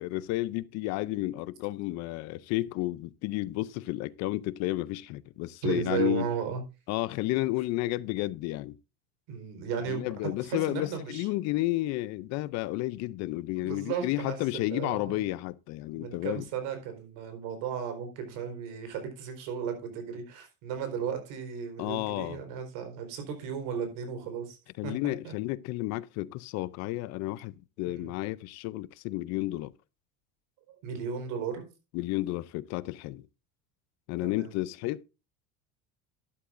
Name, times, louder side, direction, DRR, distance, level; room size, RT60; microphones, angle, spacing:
voice 1, 0.0-6.3 6.9-8.8 9.9-16.4 21.8-22.4 24.8-29.7 31.9-33.3 34.1-35.0, left 18 dB, 55° left, 0.6 m, -32 dB
voice 2, 5.6-6.6 9.3-10.0 10.4-11.3 13.6-15.2 16.0-24.6 24.8-25.3 27.8-28.1 30.8-31.6 34.2-34.5, right 7 dB, 65° right, 4.5 m, -35 dB
12.0 x 11.5 x 2.6 m
cardioid pair, 160°, 33 cm